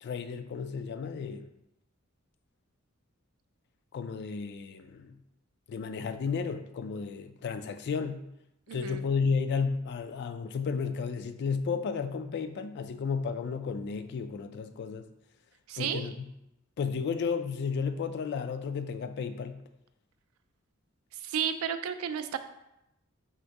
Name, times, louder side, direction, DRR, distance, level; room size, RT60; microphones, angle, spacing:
voice 1, 0.0-1.5 3.9-5.2 5.7-8.2 8.7-15.1 15.8-16.1 16.8-19.6, left 5 dB, 55° left, 9 dB, 0.3 m, -33 dB
voice 2, 8.7-9.0 15.7-16.1 21.1-22.4, right 8 dB, 85° right, 10 dB, 0.4 m, -32 dB
3.7 x 2.6 x 4.6 m, 0.86 s
head